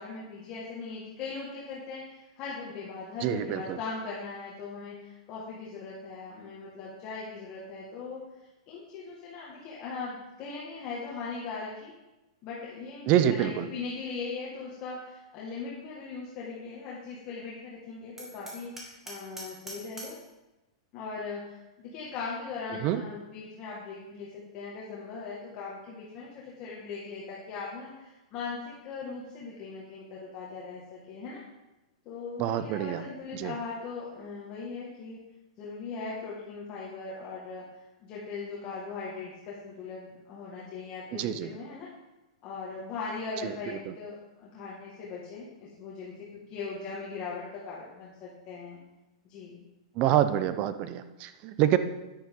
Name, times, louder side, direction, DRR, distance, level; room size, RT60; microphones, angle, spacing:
voice 1, 0.0-8.2 8.7-11.9 12.4-20.2 20.9-24.3 24.5-31.4 32.1-35.2 35.6-41.9 42.4-48.8 49.2-49.6, left 4 dB, 40° left, -6 dB, 2.0 m, -39 dB
voice 2, 3.2-3.8 13.1-13.7 22.8-23.0 32.4-33.0 33.3-33.5 41.1-41.5 50.0-51.8, right 11 dB, 40° right, 11 dB, 0.7 m, -26 dB
Hammer, 18.2-20.3, right 2 dB, 10° right, 2.4 m, -44 dB
10.0 x 8.4 x 3.9 m, 1.0 s
hypercardioid pair, 135°, 3 cm